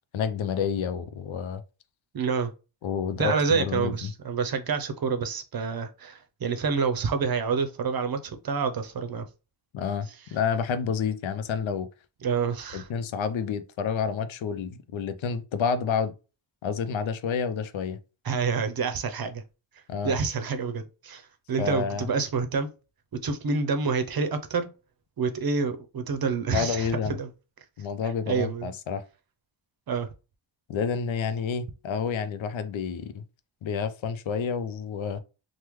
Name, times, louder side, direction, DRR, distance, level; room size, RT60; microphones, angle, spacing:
voice 1, 0.1-1.6 2.8-4.1 9.7-11.9 12.7-16.1 16.6-18.0 19.9-20.2 21.6-22.1 26.5-27.2 27.8-29.0 30.7-33.2 33.6-35.2, left 6 dB, 85° left, 0.5 m, -29 dB
voice 2, 2.1-2.5 3.2-9.3 12.2-12.9 18.2-19.4 20.0-21.2 21.5-22.7 23.1-24.7 25.2-27.3 28.3-28.7 29.9-30.1, right 5 dB, 50° right, 0.6 m, -28 dB
3.4 x 2.1 x 3.0 m
wide cardioid pair, 125°, 45 cm